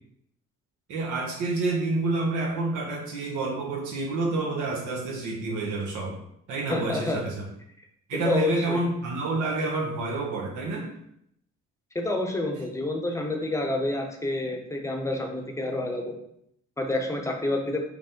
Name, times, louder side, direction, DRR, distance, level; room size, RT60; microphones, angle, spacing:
voice 1, 0.9-6.1 6.5-7.4 8.1-10.9, right 3 dB, 80° right, -2 dB, 1.0 m, -28 dB
voice 2, 6.7-7.2 8.2-8.8 11.9-16.2 16.8-17.8, left 2 dB, 10° left, 2 dB, 0.7 m, -28 dB
5.0 x 2.0 x 3.7 m, 0.73 s
cardioid pair, 90°, 30 cm